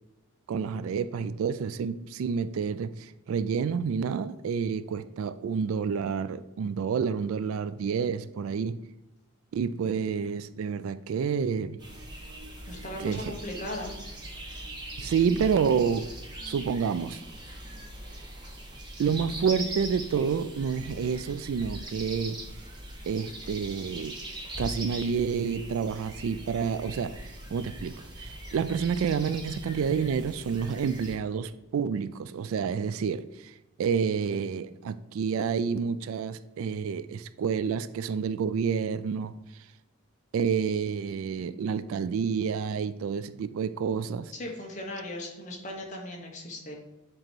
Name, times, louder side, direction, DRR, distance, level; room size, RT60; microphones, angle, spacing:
voice 1, 0.5-8.8 9.5-11.8 13.0-13.3 15.0-16.1 16.4-17.2 19.0-22.4 23.0-24.2 24.6-33.5 33.8-39.3 40.3-44.3, right 6 dB, 75° right, 0.3 m, -29 dB
sound 1, 11.8-31.1, right 1 dB, 20° right, 1.1 m, -41 dB
voice 2, 12.7-13.9 44.3-46.8, left 1 dB, 35° left, 1.1 m, -38 dB
7.5 x 3.0 x 4.5 m
head